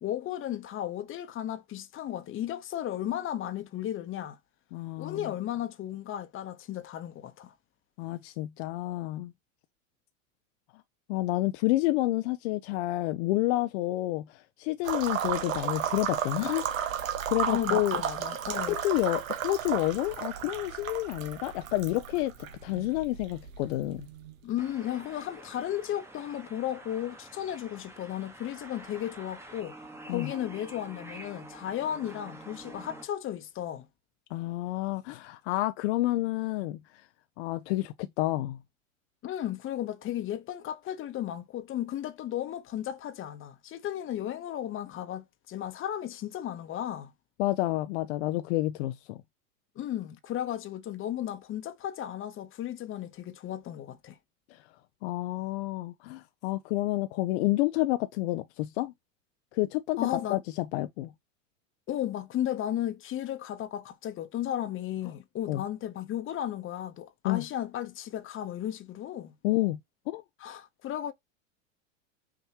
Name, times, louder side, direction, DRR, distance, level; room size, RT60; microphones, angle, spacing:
voice 1, 0.0-4.4 5.0-7.5 17.5-18.8 24.4-29.8 30.1-33.9 39.2-47.1 49.8-54.2 60.0-60.4 61.9-69.3 70.4-71.1, left 11 dB, 30° left, 0.9 m, -34 dB
voice 2, 4.7-5.3 8.0-9.3 11.1-16.6 16.9-18.0 18.7-22.3 22.6-24.1 30.1-30.3 34.3-36.8 37.4-38.6 47.4-49.2 54.5-54.6 55.0-58.9 59.5-61.1 65.5-65.6 67.2-67.4 69.4-69.8 70.1-70.2, left 17 dB, 55° left, 0.5 m, -29 dB
sound 1, 14.8-24.6, right 9 dB, 80° right, 1.1 m, -34 dB
sound 2, 24.6-33.1, right 1 dB, 5° right, 1.1 m, -48 dB
5.8 x 2.9 x 2.9 m
hypercardioid pair, 100°, 39 cm